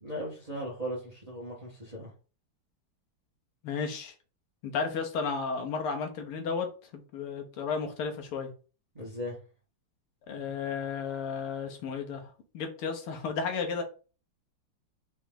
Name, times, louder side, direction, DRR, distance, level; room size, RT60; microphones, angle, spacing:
voice 1, 0.0-2.1 8.9-9.4, equal, 25° right, 0.9 m, -37 dB
voice 2, 3.6-4.2 4.6-6.7 6.9-8.5 10.3-13.8, left 5 dB, 85° left, 1.8 m, -33 dB
4.6 x 3.1 x 3.6 m
omnidirectional pair, 2.4 m